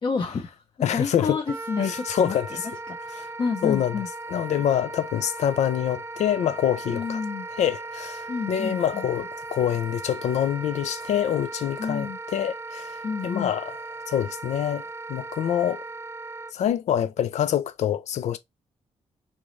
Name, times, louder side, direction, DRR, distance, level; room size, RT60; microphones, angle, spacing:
voice 1, 0.0-0.6 0.9-2.6 3.1-4.1 6.9-7.5 8.3-9.0 11.8-12.2 13.0-13.5, left 5 dB, 40° left, 0.8 m, -29 dB
voice 2, 0.8-1.4 1.8-2.7 3.1-3.3 3.6-3.9 4.3-7.2 7.6-13.7 14.1-15.8 16.5-18.4, left 10 dB, 75° left, 0.4 m, -26 dB
Wind instrument woodwind instrument, 1.5-16.5, right 3 dB, 20° right, 0.4 m, -37 dB
4.0 x 3.6 x 3.1 m
cardioid pair, 120°, 12 cm